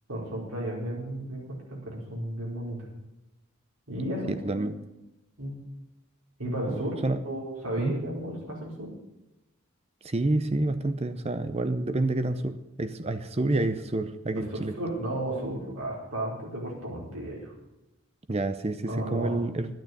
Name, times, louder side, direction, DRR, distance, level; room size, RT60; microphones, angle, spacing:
voice 1, 0.1-2.9 3.9-4.7 5.4-5.6 6.4-7.0 7.2-8.9 14.3-17.5 18.9-19.5, right 1 dB, 75° right, -3 dB, 4.7 m, -33 dB
voice 2, 4.3-4.8 6.7-7.2 7.8-7.9 10.0-14.7 18.3-19.7, right 2 dB, 25° right, 11 dB, 0.6 m, -28 dB
11.5 x 9.1 x 8.4 m, 0.95 s
head